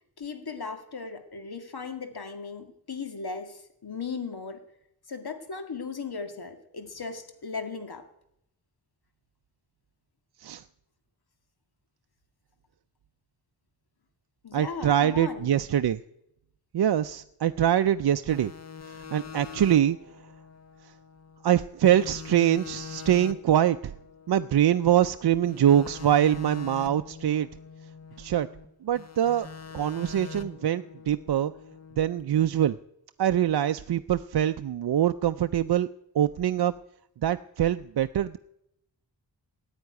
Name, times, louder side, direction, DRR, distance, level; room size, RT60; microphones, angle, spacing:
voice 1, 0.2-4.6 5.1-8.0 14.4-15.5, left 5 dB, 60° left, 6 dB, 2.1 m, -37 dB
voice 2, 14.5-16.0 16.7-18.5 19.1-20.0 21.4-23.9 24.3-27.5 28.2-28.5 28.8-29.5 29.7-31.5 32.0-32.8 33.2-35.9 36.1-36.7 37.2-38.4, right 10 dB, 65° right, 10 dB, 0.5 m, -24 dB
sound 1, 18.3-21.5 21.8-25.1 25.5-28.7 29.0-32.2, left 5 dB, 40° left, 1.2 m, -44 dB
15.0 x 9.0 x 9.5 m, 0.78 s
wide cardioid pair, 95°, 42 cm